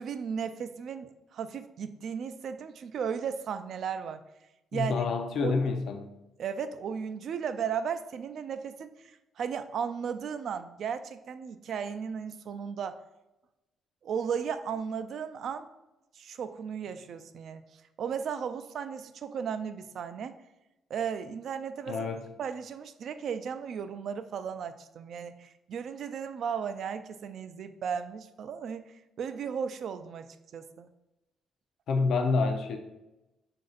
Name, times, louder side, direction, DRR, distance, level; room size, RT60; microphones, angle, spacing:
voice 1, 0.0-4.2 4.7-5.0 5.4-5.6 6.4-13.0 14.0-15.7 16.1-17.6 18.0-20.3 20.9-22.1 22.4-30.9, right 7 dB, 60° right, 10 dB, 0.3 m, -35 dB
voice 2, 4.7-6.1 21.9-22.2 31.9-32.8, left 4 dB, 65° left, 4 dB, 0.4 m, -28 dB
4.1 x 2.5 x 3.8 m, 0.96 s
cardioid pair, 120°, 0 cm